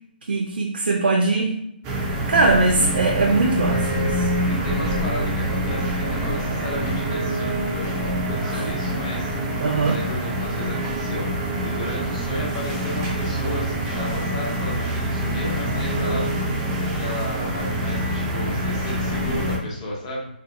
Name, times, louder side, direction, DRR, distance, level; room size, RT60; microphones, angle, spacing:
voice 1, 0.3-1.6 2.3-4.3 8.5-8.6 9.6-10.0, right 3 dB, 80° right, 1 dB, 0.5 m, -21 dB
sound 1, 1.8-19.6, right 1 dB, 15° right, 0.3 m, -25 dB
voice 2, 2.4-3.0 4.4-16.3 16.8-20.3, left 1 dB, 30° left, -3 dB, 0.9 m, -33 dB
2.8 x 2.6 x 2.7 m, 0.78 s
hypercardioid pair, 165°, 6 cm